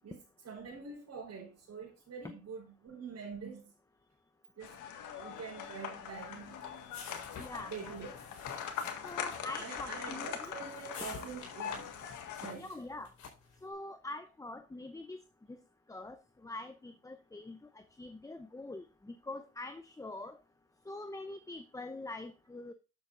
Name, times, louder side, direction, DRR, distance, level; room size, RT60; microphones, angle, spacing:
voice 1, 0.0-3.7 4.5-4.8 5.2-6.6 7.6-8.1 9.6-11.9 12.4-12.8, right 5 dB, 60° right, 4.3 m, -45 dB
sound 1, 4.6-12.5, left 8 dB, 80° left, 1.8 m, -42 dB
sound 2, 6.1-13.6, left 5 dB, 65° left, 4.6 m, -51 dB
voice 2, 7.4-7.9 9.0-10.5 12.5-13.1 13.6-15.2 15.5-15.6 15.9-16.2 16.4-17.6 18.0-20.4 20.9-22.7, left 2 dB, 10° left, 0.7 m, -44 dB
11.0 x 8.0 x 2.6 m
cardioid pair, 90°, 30 cm